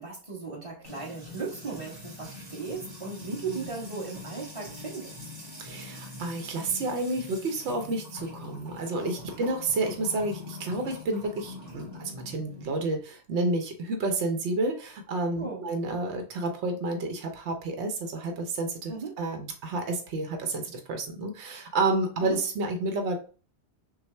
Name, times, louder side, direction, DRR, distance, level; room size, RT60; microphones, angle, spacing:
voice 1, 0.0-5.1 9.2-9.5 15.4-15.7 18.9-19.1 22.2-22.4, right 5 dB, 30° right, -4 dB, 1.4 m, -37 dB
Music / Water tap faucet / Trickle dribble, 0.8-12.6, left 2 dB, 50° right, 2.2 m, -44 dB
voice 2, 5.6-23.2, right 2 dB, 75° right, 5 dB, 1.0 m, -30 dB
5.7 x 2.1 x 3.3 m, 0.39 s
omnidirectional pair, 1.2 m